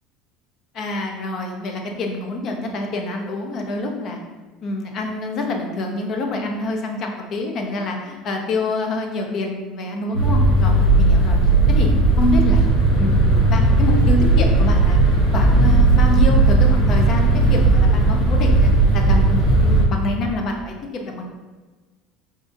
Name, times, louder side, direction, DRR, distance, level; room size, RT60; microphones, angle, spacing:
voice 1, 0.8-4.2 4.6-11.4 11.7-11.9 12.2-12.7 13.0-21.2, left 2 dB, 35° left, 2 dB, 0.6 m, -26 dB
sound 1, 10.1-19.8, right 2 dB, 65° left, 1.1 m, -15 dB
5.1 x 3.7 x 2.6 m, 1.3 s
cardioid pair, 180°, 0 cm